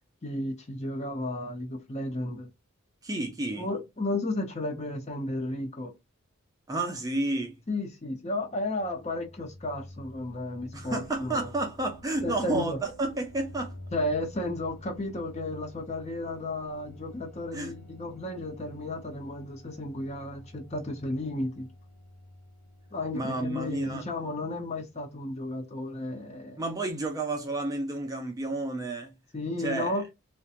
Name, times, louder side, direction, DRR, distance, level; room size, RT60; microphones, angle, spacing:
voice 1, 0.2-2.5 3.6-5.9 7.7-11.5 12.2-12.8 13.9-21.7 22.9-26.6 29.3-30.0, left 1 dB, 30° left, 0.6 m, -33 dB
voice 2, 3.0-3.7 6.7-7.6 10.7-13.8 17.5-17.7 23.1-24.0 26.6-29.1 29.6-30.0, right 2 dB, 15° right, 0.4 m, -31 dB
sound 1, 8.4-25.1, left 1 dB, 90° left, 0.7 m, -49 dB
2.7 x 2.2 x 2.4 m
head